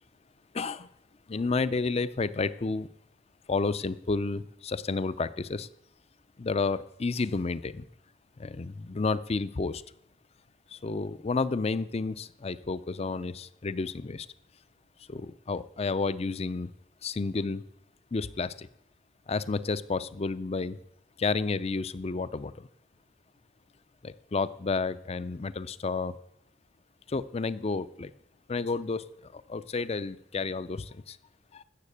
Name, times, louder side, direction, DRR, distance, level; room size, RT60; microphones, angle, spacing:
voice 1, 0.5-0.9 1.3-2.9 3.5-5.7 6.4-7.8 8.4-9.8 10.7-14.3 15.1-16.7 17.0-17.6 18.1-18.7 19.3-20.8 21.2-22.7 24.0-26.2 27.1-28.1 28.5-31.2 31.5-31.6, left 4 dB, 30° left, 16 dB, 0.5 m, -31 dB
13.5 x 7.4 x 8.5 m, 0.78 s
head